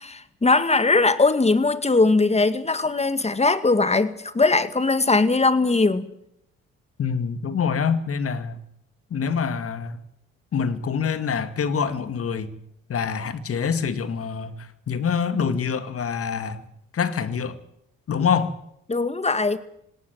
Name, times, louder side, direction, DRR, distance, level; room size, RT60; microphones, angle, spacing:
voice 1, 0.0-6.1 18.9-19.6, left 3 dB, 20° left, 13 dB, 2.0 m, -20 dB
voice 2, 7.0-8.6 9.1-10.0 10.5-12.5 12.9-16.6 16.9-17.6 18.1-18.6, left 6 dB, 50° left, 12 dB, 2.1 m, -25 dB
19.0 x 18.0 x 9.2 m, 0.75 s
hypercardioid pair, 60°, 30 cm